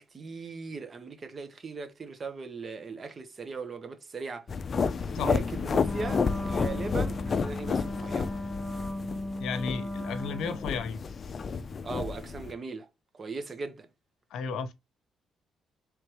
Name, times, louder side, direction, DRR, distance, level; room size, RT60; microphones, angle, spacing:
voice 1, 0.0-4.5 5.1-8.4 11.8-12.9 13.1-13.9, right 4 dB, 40° right, 1.1 m, -39 dB
sound 1, 4.5-12.5, left 5 dB, 45° left, 0.5 m, -31 dB
Wind instrument woodwind instrument, 5.8-10.9, left 1 dB, ahead, 0.9 m, -36 dB
voice 2, 9.4-11.0 14.3-14.7, left 5 dB, 80° left, 0.7 m, -33 dB
3.4 x 3.3 x 4.5 m
cardioid pair, 90°, 0 cm